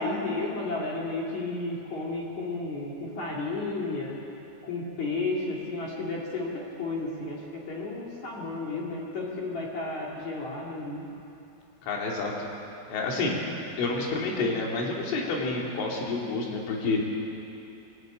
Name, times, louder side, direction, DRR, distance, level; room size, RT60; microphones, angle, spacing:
voice 1, 0.0-4.2 4.6-11.0, left 2 dB, 45° left, -3 dB, 3.0 m, -32 dB
voice 2, 11.9-12.3 12.9-13.4 13.8-17.1, left 3 dB, 75° left, -1 dB, 5.1 m, -29 dB
22.0 x 15.0 x 9.0 m, 2.8 s
omnidirectional pair, 5.8 m